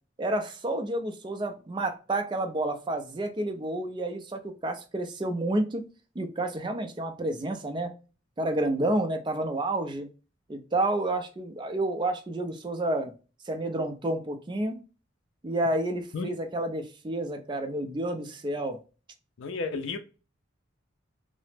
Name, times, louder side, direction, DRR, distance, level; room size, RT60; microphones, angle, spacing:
voice 1, 0.2-5.8 6.2-7.9 8.4-10.1 10.5-13.1 13.5-14.8 15.4-18.8, right 1 dB, 25° right, 0.4 m, -30 dB
voice 2, 19.4-20.0, left 4 dB, 70° left, 0.4 m, -32 dB
2.8 x 2.0 x 3.2 m
head